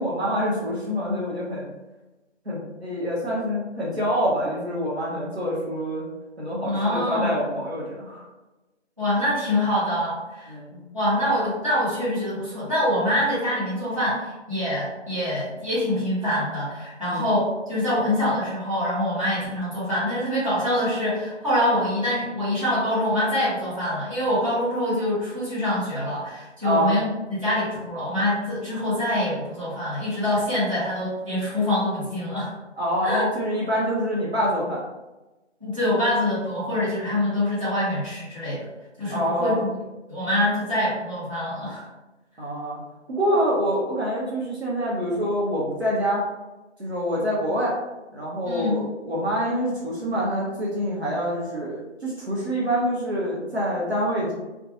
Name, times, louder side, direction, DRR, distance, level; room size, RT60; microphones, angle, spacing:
voice 1, 0.0-1.7 2.5-6.1 6.4-8.3 10.5-10.8 17.0-17.2 26.6-26.9 32.8-34.8 39.1-39.6 42.4-42.8 43.1-46.2 46.8-47.8 48.1-54.3, equal, 60° right, -6 dB, 0.8 m, -26 dB
voice 2, 6.6-7.4 9.0-10.5 10.9-32.5 33.0-33.3 35.6-38.7 39.0-39.7 40.1-41.9 48.4-48.8, left 1 dB, 30° right, -12 dB, 1.0 m, -25 dB
2.5 x 2.2 x 2.7 m, 1.1 s
figure-of-eight pair, 175°, 36 cm